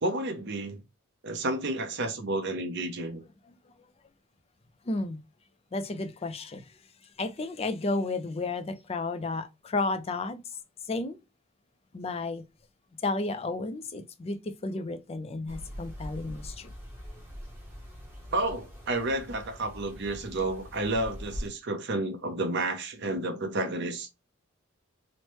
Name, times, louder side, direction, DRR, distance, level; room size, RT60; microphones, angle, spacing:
voice 1, 0.0-0.8 1.2-3.2 18.3-24.1, right 2 dB, 55° right, 0.6 m, -31 dB
voice 2, 4.9-5.2 5.7-6.6 7.2-10.4 10.9-11.2 11.9-12.4 13.0-14.4 14.6-16.7, left 3 dB, 30° left, 0.4 m, -32 dB
sound 1, 15.5-21.5, equal, 10° right, 0.8 m, -43 dB
3.1 x 2.1 x 2.9 m
head